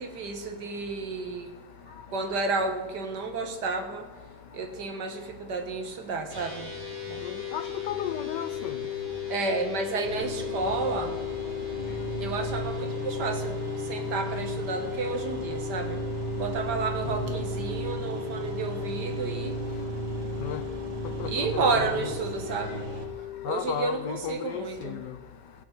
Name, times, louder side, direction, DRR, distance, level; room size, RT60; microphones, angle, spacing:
voice 1, 0.0-1.5 1.9-4.3 4.5-6.8 7.1-7.2 9.0-11.2 12.2-16.0 16.4-19.7 21.2-25.0, right 4 dB, 60° right, 6 dB, 1.8 m, -31 dB
sound 1, 6.3-23.6, left 10 dB, 35° right, 6.0 m, -36 dB
voice 2, 7.2-8.8 17.1-17.3 20.4-20.6 21.2-22.2 23.4-25.1, left 10 dB, 70° left, 12 dB, 1.2 m, -34 dB
sound 2, 10.0-23.0, right 3 dB, 85° right, 2.6 m, -36 dB
16.5 x 8.3 x 6.0 m, 1.3 s
omnidirectional pair, 2.2 m